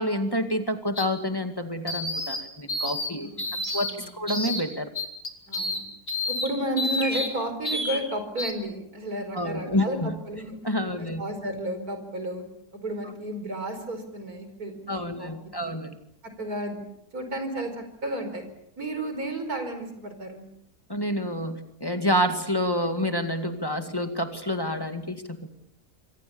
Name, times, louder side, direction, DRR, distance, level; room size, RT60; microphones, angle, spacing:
voice 1, 0.0-3.3 3.7-4.9 9.3-10.2 10.6-11.2 14.9-15.9 20.9-25.5, equal, 15° left, 6 dB, 2.2 m, -28 dB
sound 1, 1.0-1.1 1.9-2.4 2.7-3.1 3.4-3.9 4.3-4.6 4.9-5.8 6.1-6.5 6.8-7.3 7.6-8.0 8.4-8.5, left 2 dB, 40° left, 3.8 m, -29 dB
voice 2, 3.2-4.1 5.5-5.8 6.3-10.6 11.0-12.4 12.7-15.3 15.6-15.8 16.4-16.8 17.1-18.5 18.8-20.4, right 1 dB, 65° right, 8 dB, 5.2 m, -32 dB
27.5 x 24.0 x 7.1 m, 0.76 s
omnidirectional pair, 1.7 m